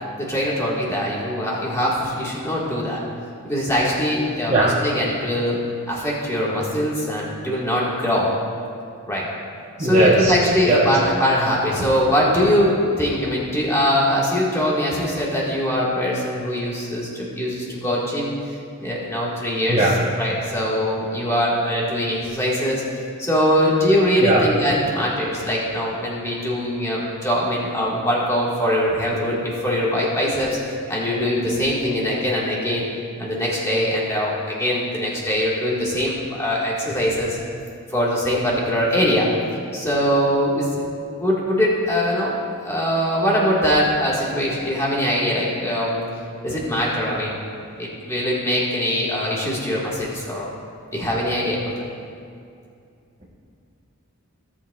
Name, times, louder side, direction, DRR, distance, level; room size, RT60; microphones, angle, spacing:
voice 1, 0.2-3.0 3.4-5.6 5.9-8.3 9.1-9.3 9.8-18.3 18.8-32.8 33.2-37.4 37.9-39.3 39.7-40.8 41.2-42.3 42.6-46.0 46.4-47.4 47.8-50.5 50.9-51.6, equal, 15° left, -5 dB, 1.7 m, -22 dB
voice 2, 9.8-10.3 10.7-10.8 19.7-19.9 24.2-24.4, right 2 dB, 30° right, -7 dB, 0.9 m, -17 dB
16.5 x 7.1 x 2.4 m, 2.4 s
head